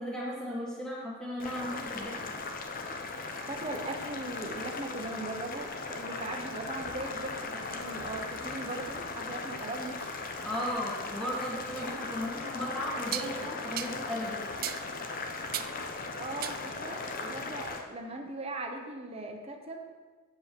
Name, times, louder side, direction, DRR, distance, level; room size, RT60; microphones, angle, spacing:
voice 1, 0.0-2.2 10.4-14.4, equal, 5° left, -5 dB, 1.8 m, -36 dB
Boiling, 1.4-17.8, left 3 dB, 40° left, 0.7 m, -38 dB
voice 2, 3.5-10.0 16.2-19.8, right 2 dB, 25° right, 2 dB, 1.0 m, -39 dB
sound 1, 6.8-9.5, left 1 dB, 55° left, 1.9 m, -55 dB
sound 2, 11.8-11.9 13.1-13.3 13.8-14.0 14.6-14.9 15.5-15.8 16.4-16.7, right 12 dB, 40° right, 0.3 m, -36 dB
7.3 x 5.5 x 6.9 m, 1.4 s
head